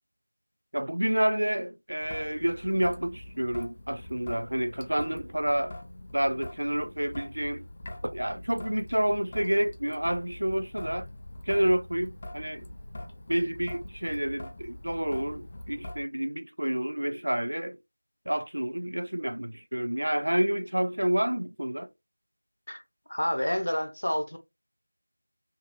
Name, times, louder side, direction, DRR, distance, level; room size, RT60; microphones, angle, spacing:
voice 1, 0.7-5.7 6.1-7.6 8.0-11.1 11.5-12.7 13.3-17.8 18.3-21.9, right 1 dB, 75° right, 0.3 m, -29 dB
Traffic noise roadway noise / Drip / Trickle dribble, 2.0-16.0, left 1 dB, 25° left, 0.3 m, -43 dB
voice 2, 23.1-24.4, equal, 70° left, 0.7 m, -29 dB
2.7 x 2.1 x 2.6 m
figure-of-eight pair, 175°, 0 cm